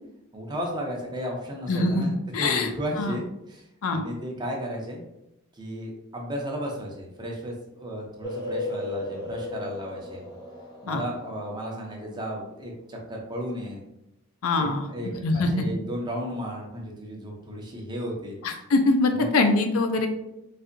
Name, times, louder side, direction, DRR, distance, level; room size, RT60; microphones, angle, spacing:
voice 1, 0.3-2.1 2.4-3.2 3.5-3.6 3.9-5.0 5.5-10.2 10.8-13.8 14.6-18.4 19.1-19.4, equal, 20° right, -1 dB, 0.6 m, -34 dB
voice 2, 1.7-2.1 2.3-2.7 3.0-3.2 3.8-4.0 10.9-11.0 14.4-14.9 15.2-15.5 18.4-20.1, left 3 dB, 75° left, 6 dB, 0.5 m, -23 dB
sound 1, 8.2-11.8, left 2 dB, 20° left, 0.7 m, -35 dB
4.1 x 2.6 x 2.5 m, 0.84 s
head